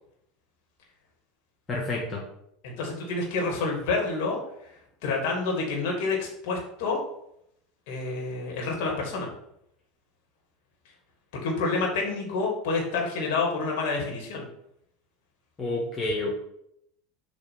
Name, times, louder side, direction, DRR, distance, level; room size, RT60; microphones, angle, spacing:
voice 1, 1.7-2.2 15.6-16.4, left 2 dB, 20° left, -4 dB, 1.5 m, -29 dB
voice 2, 2.6-4.4 5.0-7.0 7.9-9.3 11.4-14.5, left 3 dB, 55° left, -1 dB, 2.3 m, -28 dB
7.2 x 3.4 x 6.1 m, 0.75 s
figure-of-eight pair, 75°, 0 cm